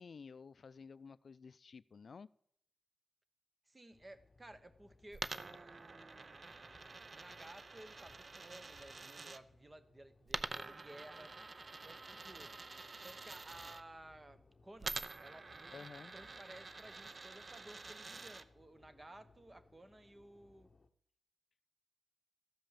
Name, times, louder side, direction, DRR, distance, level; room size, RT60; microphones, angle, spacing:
voice 1, 0.0-2.3 15.7-16.1, left 5 dB, 60° left, 19 dB, 0.4 m, -53 dB
voice 2, 3.7-6.6 7.1-11.3 11.8-12.6 13.0-15.7 16.1-20.7, right 1 dB, 25° right, 12 dB, 1.0 m, -56 dB
sound 1, 3.9-20.9, left 3 dB, 40° left, 0.8 m, -67 dB
Coin (dropping), 5.1-9.4 10.3-13.8 14.8-18.4, right 3 dB, 45° right, 0.6 m, -47 dB
13.5 x 5.3 x 7.3 m, 0.69 s
cardioid pair, 80°, 0 cm